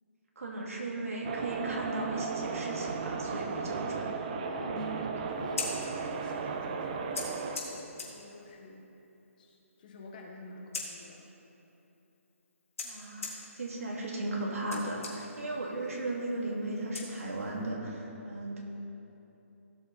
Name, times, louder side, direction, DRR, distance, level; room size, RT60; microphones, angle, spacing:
voice 1, 0.4-4.2 4.6-5.1 12.8-18.6, right 2 dB, 75° right, -2 dB, 2.6 m, -36 dB
sound 1, 1.2-7.6, right 5 dB, 30° right, 0.6 m, -35 dB
voice 2, 4.4-8.8 9.4-11.3, left 3 dB, 35° left, 0 dB, 1.5 m, -49 dB
Scissors, 5.3-17.7, left 4 dB, 65° left, 2.6 m, -45 dB
17.0 x 6.8 x 4.2 m, 3.0 s
hypercardioid pair, 160°, 8 cm